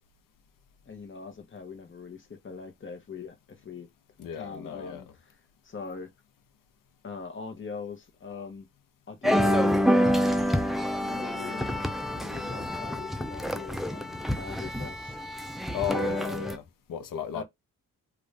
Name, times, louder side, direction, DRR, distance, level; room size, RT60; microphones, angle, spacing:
voice 1, 0.9-3.9 4.3-5.1 5.6-6.1 7.0-8.7 9.1-10.0 11.0-11.8 12.1-15.2 15.8-16.2 17.3-17.4, left 5 dB, 35° left, 1.0 m, -41 dB
voice 2, 4.2-5.0 15.7-16.6 16.9-17.4, left 8 dB, 70° left, 0.8 m, -34 dB
sound 1, 9.2-16.6, equal, ahead, 0.4 m, -27 dB
2.5 x 2.5 x 3.3 m
cardioid pair, 80°, 34 cm